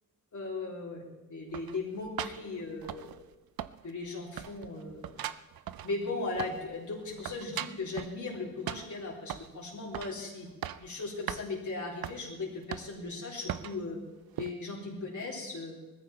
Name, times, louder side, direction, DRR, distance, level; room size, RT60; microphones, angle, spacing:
voice 1, 0.3-3.1 3.8-5.2 5.8-10.5 10.8-14.0 14.4-15.7, left 3 dB, 55° left, -4 dB, 3.9 m, -38 dB
sound 1, 1.5-3.3 3.6-4.1 4.4-6.7 7.0-8.2 8.7-9.5 9.9-10.2 10.5-10.9 11.3-11.4 12.0-12.2 12.7-13.1 13.5-13.8 14.4-14.5, right 11 dB, 90° right, 0.6 m, -39 dB
20.0 x 14.5 x 4.4 m, 1.2 s
wide cardioid pair, 115°, 35 cm